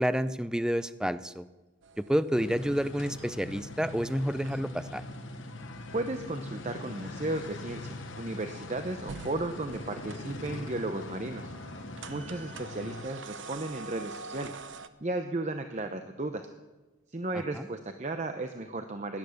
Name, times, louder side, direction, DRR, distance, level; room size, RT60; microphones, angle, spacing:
voice 1, 0.0-1.5 2.0-5.0 17.5-17.7, equal, 5° right, 13 dB, 0.4 m, -29 dB
sound 1, 1.8-14.9, right 4 dB, 70° right, 0.8 m, -48 dB
sound 2, 2.3-13.0, left 2 dB, 80° left, 1.1 m, -42 dB
voice 2, 5.9-11.5 12.1-14.6 15.0-16.4 17.1-19.2, right 2 dB, 35° right, 7 dB, 0.7 m, -34 dB
17.0 x 11.0 x 6.5 m, 1.2 s
head